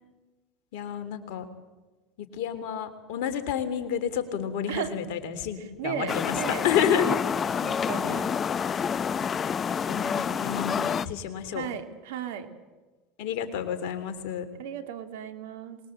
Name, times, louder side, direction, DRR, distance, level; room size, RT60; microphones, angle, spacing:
voice 1, 0.7-1.4 2.3-7.0 9.9-11.7 13.2-14.4, left 8 dB, 70° left, 8 dB, 3.2 m, -30 dB
voice 2, 5.6-6.7 7.1-7.2 7.6-8.3 11.5-12.5 14.6-15.8, right 9 dB, 80° right, 8 dB, 2.7 m, -35 dB
sound 1, 6.1-11.1, left 7 dB, 35° left, 0.7 m, -28 dB
25.0 x 21.0 x 7.9 m, 1.2 s
hypercardioid pair, 90°, 0 cm